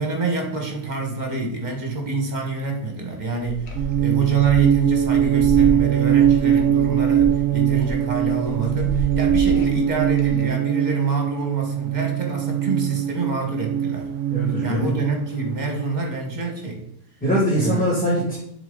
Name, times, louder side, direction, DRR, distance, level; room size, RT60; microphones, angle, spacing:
voice 1, 0.0-14.1 14.6-16.8 17.5-17.9, right 3 dB, 35° right, 2 dB, 1.3 m, -27 dB
sound 1, 3.4-10.4, equal, 80° left, 1.5 m, -30 dB
sound 2, 3.7-15.8, right 11 dB, 70° right, 0.9 m, -21 dB
voice 2, 14.3-14.9 17.2-18.4, equal, 5° left, -7 dB, 1.8 m, -22 dB
7.2 x 3.9 x 3.8 m, 0.77 s
omnidirectional pair, 1.5 m